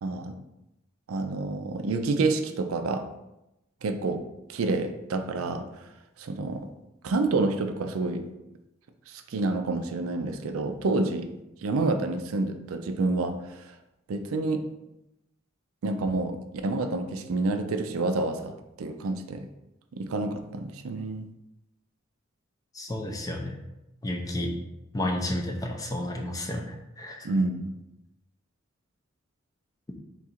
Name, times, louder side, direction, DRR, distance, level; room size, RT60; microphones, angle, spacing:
voice 1, 0.0-0.4 1.1-3.1 3.8-4.2 4.5-5.9 6.2-6.7 7.0-8.2 9.1-11.3 11.6-13.8 14.1-14.6 15.8-19.5 19.9-21.3 27.2-27.7, right 3 dB, 85° right, 7 dB, 0.4 m, -28 dB
voice 2, 22.7-23.6 24.0-24.6 24.9-27.3, left 1 dB, 15° left, 2 dB, 0.4 m, -31 dB
3.8 x 2.4 x 4.3 m, 0.91 s
head